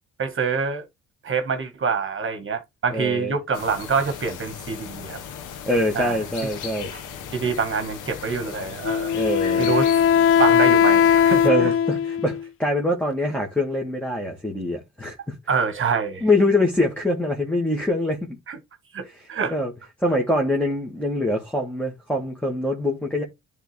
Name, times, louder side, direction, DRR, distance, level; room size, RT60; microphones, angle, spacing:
voice 1, 0.2-0.9 1.2-5.2 5.9-6.2 6.9-7.0 7.3-9.2 9.6-9.9 10.4-11.7 15.5-16.2 18.5-18.6 18.9-19.5, right 5 dB, 45° right, 1.4 m, -26 dB
voice 2, 2.9-3.3 5.7-6.9 9.1-9.7 11.4-15.4 16.2-18.3 19.0-19.7 20.0-23.2, left 1 dB, 5° left, 1.9 m, -24 dB
sound 1, 3.5-11.5, left 7 dB, 85° left, 1.3 m, -37 dB
Wind instrument woodwind instrument, 8.8-12.5, left 8 dB, 45° left, 0.4 m, -19 dB
9.9 x 3.6 x 3.3 m
cardioid pair, 90°, 30 cm